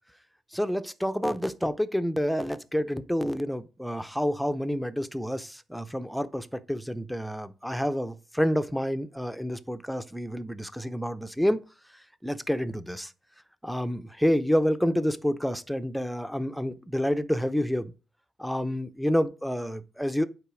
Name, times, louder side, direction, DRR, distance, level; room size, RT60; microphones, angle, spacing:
voice 1, 0.5-11.6 12.2-13.1 13.6-17.9 18.4-20.3, equal, ahead, 0.7 m, -28 dB
9.0 x 4.0 x 6.2 m
cardioid pair, 90°, 0 cm